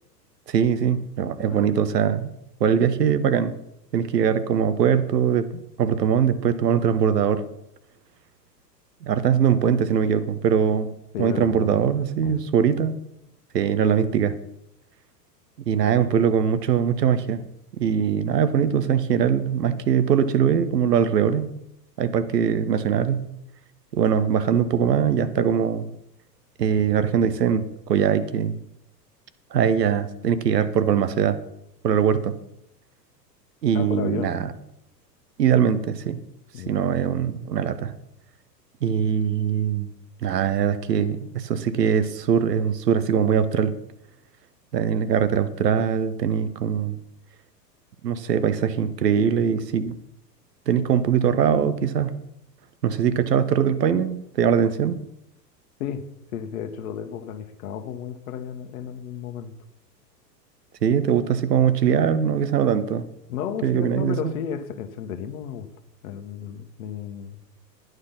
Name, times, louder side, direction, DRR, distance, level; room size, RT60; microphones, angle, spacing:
voice 1, 0.5-2.3 2.6-3.6 3.9-7.4 9.0-10.9 11.2-13.0 13.5-14.3 15.7-17.4 17.8-21.5 22.0-23.3 23.9-25.9 26.6-28.6 29.5-31.4 31.8-32.3 33.6-34.5 35.4-36.2 36.7-37.9 38.8-39.9 40.2-43.8 44.7-47.0 48.0-50.0 50.7-52.2 52.8-55.0 60.8-63.1 63.6-64.3, right 8 dB, 70° right, 13 dB, 1.2 m, -22 dB
voice 2, 11.1-11.9 12.2-12.4 33.7-34.4 36.5-36.7 55.8-56.0 56.3-59.5 63.3-65.7 66.0-67.4, left 8 dB, 55° left, 7 dB, 1.4 m, -33 dB
11.5 x 9.7 x 5.5 m, 0.80 s
figure-of-eight pair, 100°, 50 cm